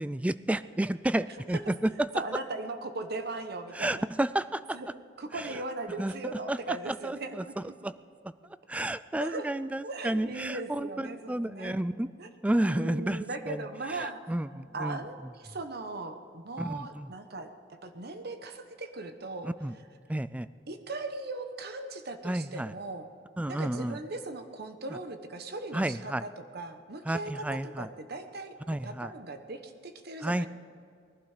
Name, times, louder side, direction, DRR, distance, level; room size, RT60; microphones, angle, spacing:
voice 1, 0.0-2.1 3.7-4.6 5.3-5.6 6.0-6.1 6.5-7.9 8.7-12.1 12.4-13.6 13.9-15.0 16.6-17.1 19.4-19.7 20.1-20.5 22.2-22.7 23.4-24.0 24.9-25.0 25.7-26.2 27.1-27.9 28.7-29.1 30.2-30.5, right 1 dB, 5° right, 15 dB, 0.3 m, -31 dB
voice 2, 2.1-4.1 4.7-4.9 5.2-7.7 9.2-9.5 9.8-11.8 12.2-12.3 12.6-14.2 14.7-19.5 20.7-23.1 23.5-30.5, right 2 dB, 60° right, 8 dB, 1.1 m, -39 dB
20.5 x 11.5 x 5.0 m, 2.3 s
head